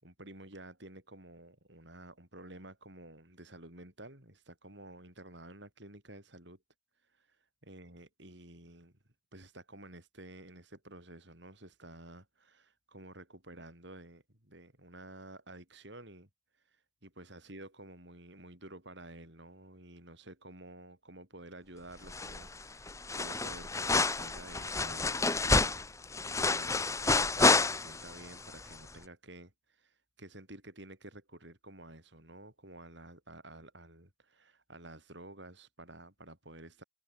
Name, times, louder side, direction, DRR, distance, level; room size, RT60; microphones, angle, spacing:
voice 1, 0.0-6.6 7.2-7.3 7.6-9.0 9.3-16.3 17.0-25.8 26.4-29.5 29.8-36.8, right 1 dB, 60° right, 7.6 m, -51 dB
sound 1, 22.1-22.6 22.9-28.2 28.5-28.6, left 3 dB, 15° left, 1.1 m, -29 dB
head